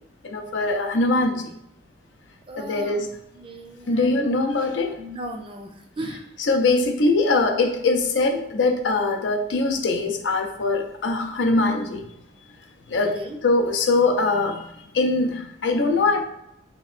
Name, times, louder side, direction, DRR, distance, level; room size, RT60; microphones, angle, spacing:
voice 1, 0.2-1.5 2.6-3.1 3.9-5.0 6.5-12.0 12.9-13.2 13.4-16.2, left 3 dB, 75° left, 4 dB, 0.6 m, -22 dB
voice 2, 2.5-3.1 3.3-4.3 5.0-6.2 12.9-13.4, right 1 dB, 30° right, 4 dB, 0.4 m, -37 dB
3.0 x 2.7 x 4.2 m, 0.81 s
head